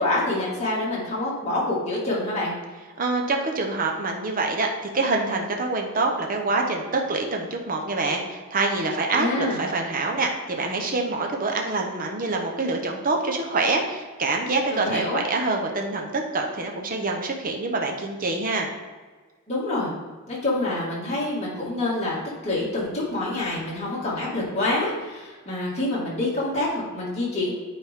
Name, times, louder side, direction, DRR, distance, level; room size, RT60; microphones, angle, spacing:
voice 1, 0.0-2.6 9.1-9.6 14.7-15.2 19.5-19.9 20.3-22.2 22.4-27.5, left 2 dB, 30° left, -6 dB, 2.1 m, -26 dB
voice 2, 3.0-4.7 4.9-18.7, right 3 dB, 40° right, 2 dB, 0.9 m, -26 dB
9.1 x 4.2 x 3.6 m, 1.4 s
head